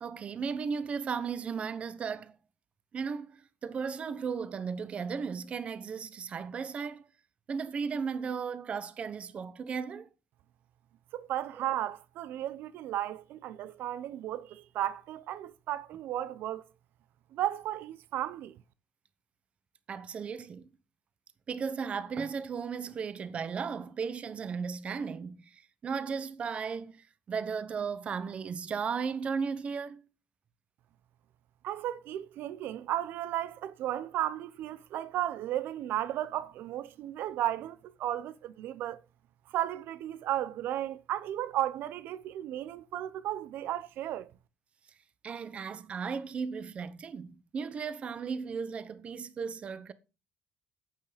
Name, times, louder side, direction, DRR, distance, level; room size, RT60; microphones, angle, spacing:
voice 1, 0.0-2.4 2.9-7.0 7.5-10.1 11.5-11.6 19.9-20.7 21.5-30.1 45.2-49.9, right 6 dB, 30° right, 0.9 m, -35 dB
voice 2, 11.1-16.6 17.3-18.6 31.6-39.0 39.5-44.3, right 12 dB, 65° right, 0.8 m, -34 dB
8.9 x 8.3 x 5.0 m
cardioid pair, 160°, 4 cm